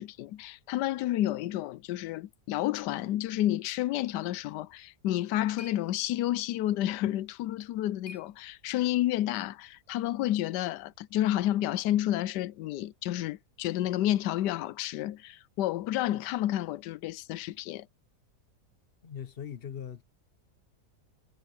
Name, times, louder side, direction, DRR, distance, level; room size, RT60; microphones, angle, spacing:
voice 1, 0.0-17.9, left 13 dB, 90° left, 1.2 m, -30 dB
sound 1, 4.8-9.0, left 2 dB, 65° left, 2.1 m, -55 dB
voice 2, 19.0-20.0, left 8 dB, 40° left, 1.0 m, -40 dB
omnidirectional pair, 1.8 m